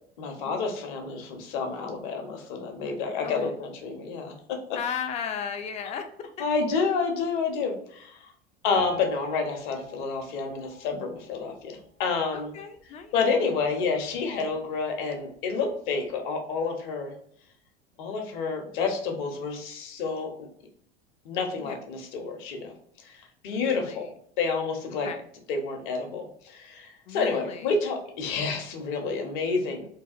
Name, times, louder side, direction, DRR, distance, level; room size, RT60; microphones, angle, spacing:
voice 1, 0.2-4.6 6.4-8.2 8.6-12.5 13.1-17.1 18.0-20.5 21.2-22.7 23.0-24.1 24.4-25.1 25.5-29.9, left 4 dB, 55° left, 3 dB, 0.7 m, -29 dB
voice 2, 4.7-6.3 12.3-13.2 14.5-14.6 21.6-21.8 23.5-24.0 25.0-25.2 27.1-27.7 28.3-28.5, left 7 dB, 25° left, 7 dB, 0.3 m, -36 dB
Piano, 8.7-11.8 12.4-12.5 12.8-12.9 13.6-13.7 14.3-14.4, left 1 dB, 35° right, 0.6 m, -40 dB
2.7 x 2.3 x 2.4 m, 0.66 s
figure-of-eight pair, 75°, 30 cm